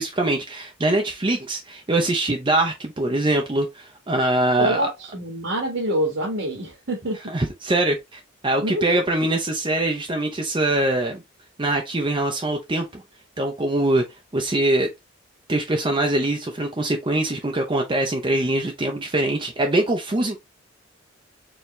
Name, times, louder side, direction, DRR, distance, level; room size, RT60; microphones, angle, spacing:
voice 1, 0.0-4.9 7.3-11.2 11.6-13.0 13.4-14.0 14.3-14.9 15.5-20.4, right 2 dB, 25° right, 0.6 m, -23 dB
voice 2, 4.6-7.2 8.6-9.0, right 1 dB, 70° right, 1.4 m, -26 dB
4.5 x 2.9 x 3.1 m
head